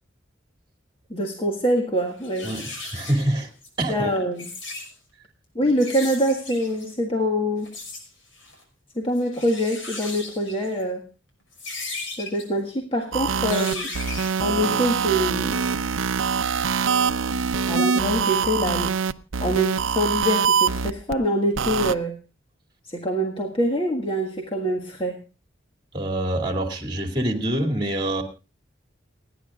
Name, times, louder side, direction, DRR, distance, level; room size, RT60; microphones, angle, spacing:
voice 1, 1.1-2.5 3.9-4.5 5.6-7.7 9.0-11.0 12.1-13.9 14.4-15.6 17.7-18.9 19.4-22.2 22.8-25.2, equal, 25° left, 1 dB, 1.6 m, -25 dB
sound 1, 1.8-1.9 2.2-3.7 4.2-4.9 5.8-6.9 7.6-8.0 8.3-8.6 9.1-10.8 11.5-12.4 13.4-14.5, left 3 dB, 80° left, 5.7 m, -36 dB
voice 2, 2.4-3.5 3.8-4.1 25.9-28.2, right 1 dB, 25° right, 5 dB, 2.4 m, -25 dB
sound 2, 13.1-21.1 21.6-21.9, right 6 dB, 85° right, 0.6 m, -24 dB
29.5 x 10.0 x 2.4 m, 0.31 s
head